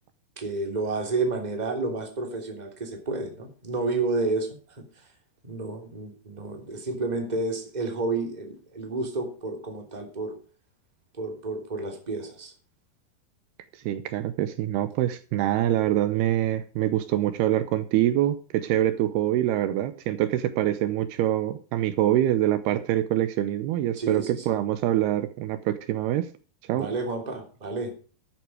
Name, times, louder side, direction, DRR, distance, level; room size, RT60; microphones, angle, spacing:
voice 1, 0.4-5.0 5.4-10.4 11.1-12.5 23.9-24.6 26.7-27.9, right 3 dB, 10° right, 3 dB, 2.6 m, -30 dB
voice 2, 13.8-26.3 26.7-26.9, right 13 dB, 80° right, 12 dB, 2.8 m, -25 dB
12.0 x 9.4 x 4.9 m, 0.39 s
omnidirectional pair, 4.7 m